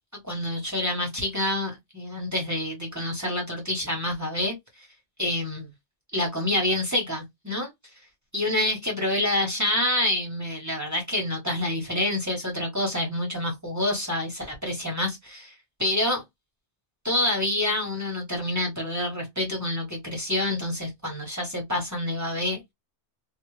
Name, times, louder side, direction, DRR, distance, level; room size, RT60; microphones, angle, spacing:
voice 1, 0.2-4.9 5.2-5.7 6.1-7.7 8.3-15.5 15.8-16.2 17.0-22.7, left 1 dB, 15° right, 0.9 m, -27 dB
2.4 x 2.4 x 3.0 m
omnidirectional pair, 1.1 m